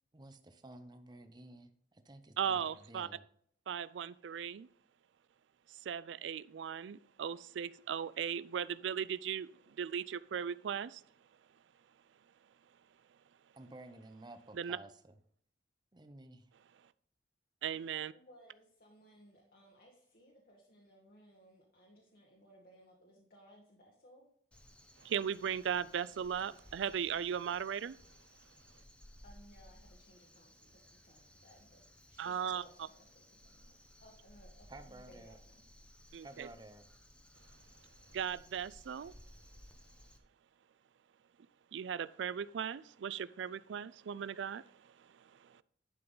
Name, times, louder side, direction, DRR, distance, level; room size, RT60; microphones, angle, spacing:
voice 1, 0.1-3.2 13.6-15.2 15.9-16.5 34.7-35.4 36.2-36.8, right 2 dB, 25° right, 0.7 m, -53 dB
voice 2, 2.4-3.1 3.7-4.7 5.7-11.0 14.6-14.8 17.6-18.1 25.0-28.0 32.2-32.6 36.1-36.5 38.1-39.1 41.7-45.6, right 8 dB, 80° right, 0.4 m, -38 dB
voice 3, 18.0-24.3 29.2-31.8 32.1-35.7, equal, 55° left, 1.6 m, -62 dB
Crow, 24.5-40.2, equal, 5° left, 0.9 m, -60 dB
11.0 x 5.8 x 3.9 m
head